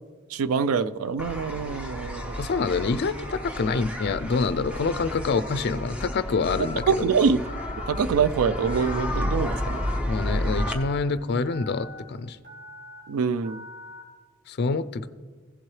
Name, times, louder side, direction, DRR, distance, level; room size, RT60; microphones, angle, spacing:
voice 1, 0.3-2.4 6.9-7.5 7.9-9.9 13.1-13.6, right 5 dB, 75° right, 15 dB, 0.4 m, -25 dB
sound 1, 1.2-10.7, left 1 dB, 5° right, 0.7 m, -32 dB
Telephone, 2.2-2.7 3.2-3.8 4.3-4.9 5.3-5.9 6.3-6.9 7.4-8.0 8.5-9.0 9.5-10.0 10.5-11.0 11.4-12.0 12.4-13.0 13.4-14.0, left 1 dB, 45° right, 3.5 m, -42 dB
voice 2, 2.4-7.1 10.1-12.4 14.5-15.1, left 4 dB, 50° left, 13 dB, 0.4 m, -26 dB
16.0 x 7.4 x 3.2 m, 1.4 s
head